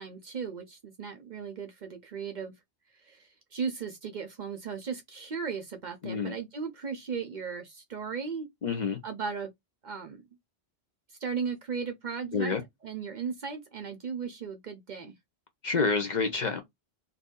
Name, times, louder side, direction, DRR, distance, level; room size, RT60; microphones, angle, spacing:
voice 1, 0.0-2.5 3.0-8.5 9.0-9.5 9.8-10.2 11.2-12.5 12.8-15.1, right 6 dB, 55° right, 0.6 m, -36 dB
voice 2, 6.0-6.4 8.6-9.0 12.3-12.6 15.6-16.6, left 4 dB, 50° left, 0.6 m, -28 dB
2.8 x 2.6 x 3.6 m
omnidirectional pair, 1.1 m